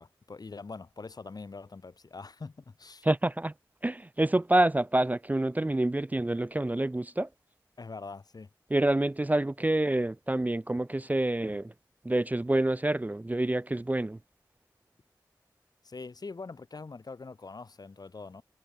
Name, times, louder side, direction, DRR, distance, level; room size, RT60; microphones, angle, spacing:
voice 1, 0.0-3.1 7.8-8.5 15.8-18.4, left 4 dB, 60° left, 0.8 m, -43 dB
voice 2, 3.0-3.5 3.8-7.3 8.7-11.7 12.0-14.2, right 1 dB, 20° right, 0.4 m, -27 dB
wide cardioid pair, 50°, 8 cm